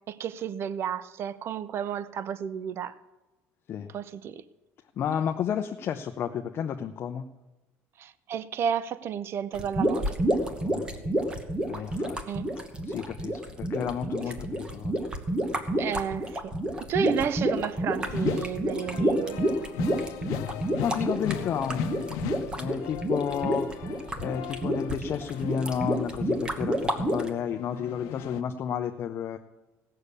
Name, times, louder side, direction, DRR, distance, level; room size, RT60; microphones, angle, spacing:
voice 1, 0.0-3.0 3.9-4.4 8.0-10.2 12.3-12.5 15.8-16.5 16.9-19.4, right 8 dB, 45° right, 0.6 m, -32 dB
voice 2, 5.0-7.3 10.6-11.3 11.7-12.2 12.9-15.1 17.0-17.2 20.8-21.9 22.6-29.4, left 8 dB, 40° left, 0.6 m, -32 dB
sound 1, 9.5-27.3, right 1 dB, 15° right, 1.2 m, -29 dB
sound 2, 18.0-26.8 27.2-28.4, left 12 dB, 80° left, 0.8 m, -38 dB
16.5 x 6.7 x 8.3 m
cardioid pair, 145°, 6 cm